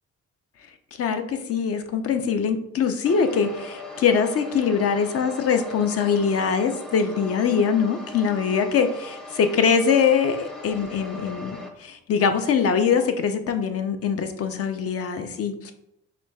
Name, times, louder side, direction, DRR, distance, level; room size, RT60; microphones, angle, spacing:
voice 1, 1.0-15.7, left 6 dB, 50° left, 7 dB, 0.5 m, -23 dB
sound 1, 3.0-11.7, left 1 dB, ahead, 0.5 m, -39 dB
5.0 x 3.0 x 2.2 m, 0.79 s
cardioid pair, 90°, 30 cm